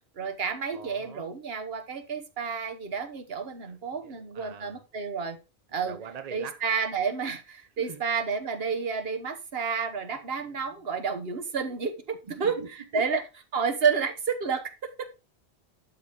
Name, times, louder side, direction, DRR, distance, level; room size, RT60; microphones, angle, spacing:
voice 1, 0.2-5.4 5.7-6.0 6.3-12.6 12.9-13.2 13.5-15.1, right 5 dB, 65° right, 1.2 m, -30 dB
voice 2, 0.7-1.3 3.7-4.8 5.9-6.6 7.8-8.0 10.4-10.7 11.6-11.7 12.2-13.1 13.9-14.0, right 6 dB, 40° right, 0.7 m, -43 dB
12.0 x 4.2 x 3.4 m
omnidirectional pair, 1.1 m